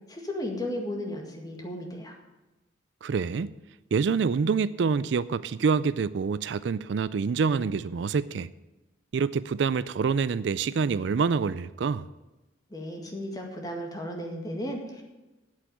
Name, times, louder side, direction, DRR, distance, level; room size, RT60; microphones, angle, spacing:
voice 1, 0.1-2.2 12.7-15.0, left 1 dB, 20° left, 2 dB, 1.9 m, -35 dB
voice 2, 3.0-3.5 3.9-8.5 9.1-12.1, right 5 dB, 65° right, 17 dB, 0.4 m, -26 dB
8.5 x 8.2 x 9.1 m, 1.1 s
head